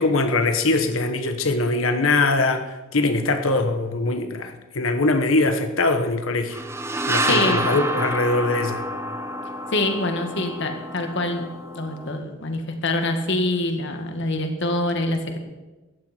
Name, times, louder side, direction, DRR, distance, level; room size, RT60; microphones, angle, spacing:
voice 1, 0.0-6.6 7.1-8.8, left 2 dB, 85° left, 7 dB, 1.3 m, -22 dB
sound 1, 6.5-12.2, right 1 dB, 15° right, 0.9 m, -28 dB
voice 2, 7.2-7.6 9.7-11.5 11.7-15.4, left 2 dB, 65° left, 5 dB, 2.0 m, -25 dB
17.5 x 14.5 x 4.5 m, 1.1 s
head